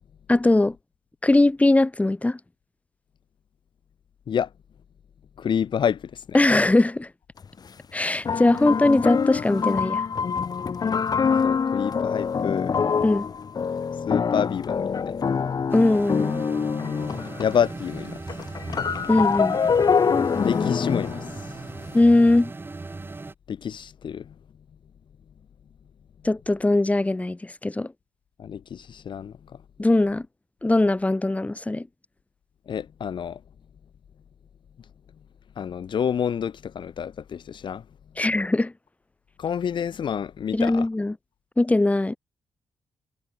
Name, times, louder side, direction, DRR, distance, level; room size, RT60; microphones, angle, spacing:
voice 1, 0.3-0.8 1.2-2.4 6.3-7.1 7.9-10.0 13.0-13.3 15.7-16.4 19.1-19.6 21.9-22.5 26.2-27.9 29.8-30.3 30.6-31.9 38.2-38.7 40.5-41.1 41.6-42.2, left 2 dB, 15° left, 6.5 m, -20 dB
voice 2, 5.4-6.4 11.4-12.8 14.1-15.2 17.4-18.2 20.4-21.5 23.5-24.3 28.4-29.3 32.7-33.4 35.6-37.8 39.4-40.9, left 8 dB, 65° left, 4.9 m, -28 dB
sound 1, 7.4-7.5 8.2-17.8 18.0-21.9, left 6 dB, 50° left, 7.6 m, -25 dB
sound 2, 15.7-23.3, right 3 dB, 25° right, 6.3 m, -38 dB
cardioid pair, 100°, 9 cm